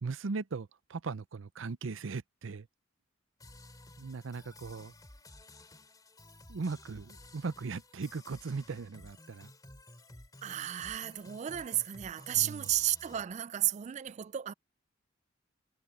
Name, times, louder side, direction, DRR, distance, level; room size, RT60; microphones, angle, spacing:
voice 1, 0.0-2.7 4.0-4.9 6.5-9.5 12.3-12.7, right 4 dB, 90° right, 0.6 m, -38 dB
sound 1, 3.4-13.3, left 2 dB, 20° left, 2.4 m, -54 dB
voice 2, 10.4-14.5, right 12 dB, 35° right, 0.3 m, -33 dB
head